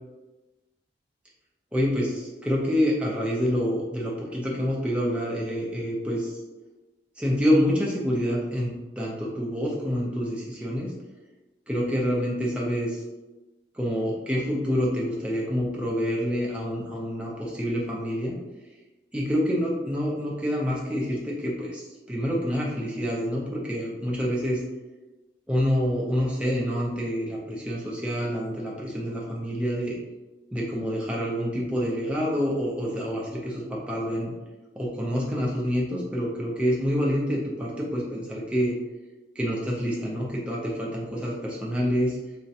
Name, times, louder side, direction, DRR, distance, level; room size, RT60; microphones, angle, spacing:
voice 1, 1.7-6.3 7.2-10.9 11.7-13.0 13.7-18.4 19.1-24.6 25.5-29.9 30.5-34.3 34.8-38.8 39.4-42.2, equal, 5° right, -4 dB, 0.4 m, -27 dB
2.4 x 2.0 x 2.7 m, 1.1 s
head